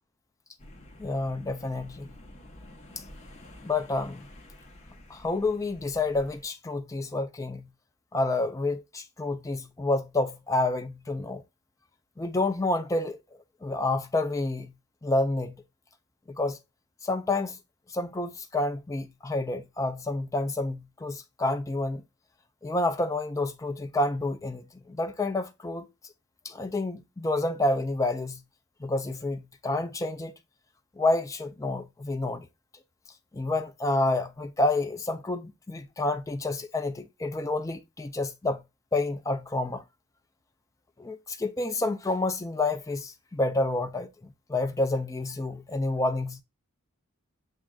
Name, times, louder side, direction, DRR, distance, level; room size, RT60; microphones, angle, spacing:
sound 1, 0.6-6.4, left 1 dB, 30° left, 0.8 m, -50 dB
voice 1, 1.0-2.1 3.6-4.3 5.1-7.7 8.1-11.4 12.2-13.2 13.6-14.7 15.0-15.6 16.3-16.6 17.0-17.6 17.9-22.0 22.6-25.9 26.4-28.4 28.8-30.3 31.0-32.5 33.3-38.6 38.9-39.8 41.0-46.4, left 2 dB, 15° left, 0.3 m, -29 dB
7.2 x 2.6 x 2.2 m
head